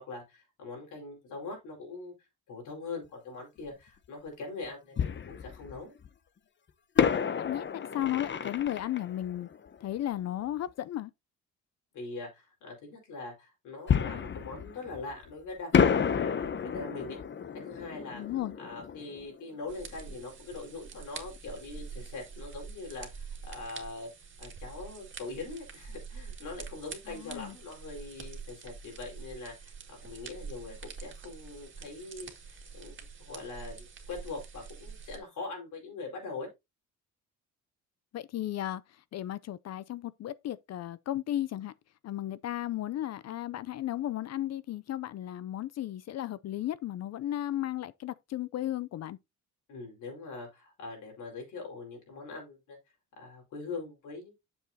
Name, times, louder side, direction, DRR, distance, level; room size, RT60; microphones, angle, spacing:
voice 1, 0.0-2.1 2.5-5.9 11.9-17.2 17.5-18.2 18.6-24.1 24.4-36.5 49.7-52.8 53.2-54.3, left 3 dB, 80° left, 4.7 m, -42 dB
Fireworks, 3.7-3.8 5.0-6.1 7.0-10.4 13.9-15.3 15.7-20.3 20.5-20.6 21.1-21.4, left 7 dB, 40° left, 0.8 m, -30 dB
voice 2, 7.4-9.5 9.8-11.1 18.1-18.5 27.1-27.6 38.1-41.7 42.0-49.2, left 13 dB, 60° left, 0.5 m, -34 dB
sound 1, 19.7-35.2, right 5 dB, 40° right, 2.0 m, -46 dB
8.0 x 7.2 x 2.8 m
cardioid pair, 90°, 30 cm